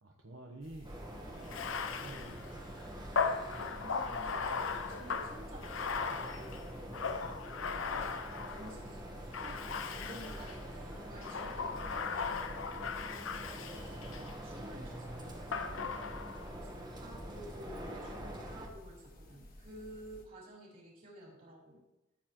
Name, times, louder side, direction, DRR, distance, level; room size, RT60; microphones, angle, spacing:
voice 1, 0.0-1.0 1.6-3.0, right 1 dB, 70° right, 0 dB, 1.0 m, -52 dB
sound 1, 0.6-20.3, equal, 45° left, 1.5 m, -55 dB
sound 2, 0.8-18.7, right 1 dB, 20° right, 1.3 m, -45 dB
voice 2, 1.2-1.6 3.2-6.7 8.5-9.5 9.9-12.7 13.5-15.9 16.5-21.8, right 1 dB, 40° right, -4 dB, 3.5 m, -52 dB
Bathtub (filling or washing), 1.4-8.8 9.3-10.6 11.2-14.4 15.5-16.5, left 5 dB, 70° left, 0.6 m, -38 dB
14.5 x 7.6 x 3.0 m, 0.95 s
head